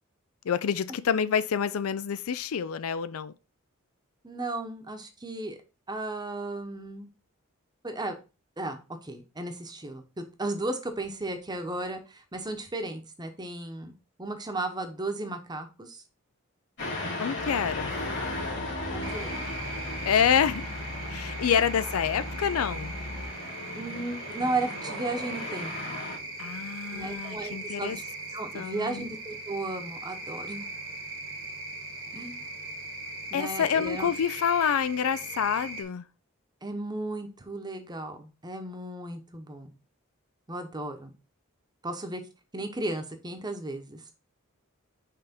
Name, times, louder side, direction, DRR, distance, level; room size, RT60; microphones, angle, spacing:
voice 1, 0.4-3.3 17.2-17.9 20.0-20.6 21.1-23.0 26.4-28.0 28.5-29.0 33.3-36.1, left 7 dB, 80° left, 0.4 m, -27 dB
voice 2, 4.2-5.6 5.9-7.1 7.8-8.2 8.6-13.9 14.2-16.0 18.9-19.3 23.7-25.9 26.9-28.0 28.3-30.7 32.1-32.5 33.3-34.1 36.6-39.7 40.5-41.1 41.8-42.2 42.5-44.0, right 2 dB, 20° right, 0.9 m, -35 dB
sound 1, 16.8-26.2, left 2 dB, 60° left, 2.9 m, -37 dB
sound 2, 17.4-23.3, left 1 dB, 15° left, 1.2 m, -41 dB
sound 3, 19.0-35.8, right 2 dB, 65° right, 1.5 m, -39 dB
5.7 x 3.4 x 5.2 m
head